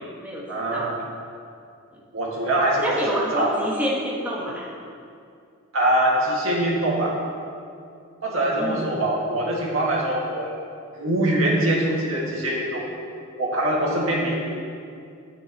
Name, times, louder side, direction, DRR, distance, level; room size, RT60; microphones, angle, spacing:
voice 1, 0.5-1.0 2.1-2.8 3.3-3.5 5.7-7.2 8.2-10.5 10.9-12.9 13.4-14.3, right 1 dB, 80° right, -3 dB, 2.0 m, -23 dB
voice 2, 2.8-4.7 8.6-8.9, right 1 dB, 10° right, -6 dB, 1.5 m, -27 dB
13.0 x 9.4 x 3.0 m, 2.4 s
head